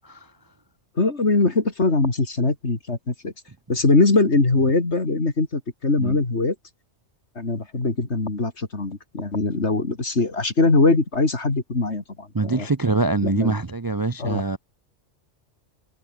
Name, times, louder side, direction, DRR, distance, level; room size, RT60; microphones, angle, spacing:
voice 1, 1.0-3.3 3.7-6.6 7.4-12.7 13.2-13.5 14.2-14.4, left 3 dB, 65° left, 3.4 m, -22 dB
voice 2, 12.3-14.6, right 3 dB, 25° right, 0.5 m, -24 dB
omnidirectional pair, 1.2 m